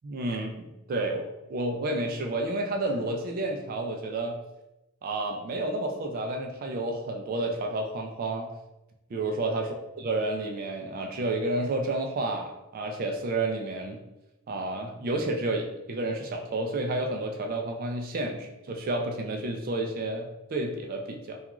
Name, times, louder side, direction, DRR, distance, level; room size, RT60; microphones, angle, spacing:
voice 1, 0.0-4.4 5.0-8.5 9.1-9.7 10.0-14.0 14.5-21.4, right 2 dB, 45° right, 3 dB, 0.3 m, -30 dB
2.3 x 2.3 x 2.9 m, 0.95 s
head